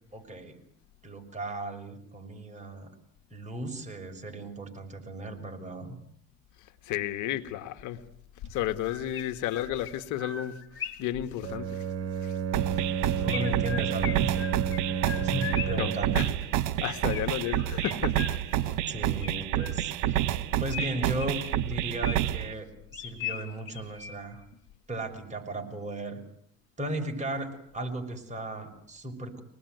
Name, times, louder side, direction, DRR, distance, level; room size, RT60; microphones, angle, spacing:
voice 1, 0.1-0.6 1.0-2.9 3.3-6.0 13.2-14.5 15.2-16.2 18.9-24.4 24.9-26.2 26.8-29.4, right 1 dB, 25° right, 3 dB, 6.1 m, -36 dB
voice 2, 6.9-8.0 8.5-10.6 11.0-11.8 12.2-12.3 15.7-16.3 16.8-18.2 18.6-18.7, left 12 dB, 70° left, 9 dB, 1.7 m, -32 dB
Chirp tweet, 7.8-7.9 8.6-11.2 13.3-15.9 17.1-18.7 19.2-20.1 20.7-22.5 22.9-24.4, left 9 dB, 45° left, 3.7 m, -40 dB
Bowed string instrument, 11.4-16.5, right 7 dB, 50° right, 2.1 m, -31 dB
sound 1, 12.5-22.5, right 13 dB, 75° right, 1.5 m, -29 dB
25.0 x 19.5 x 9.4 m, 0.68 s
cardioid pair, 105°, 31 cm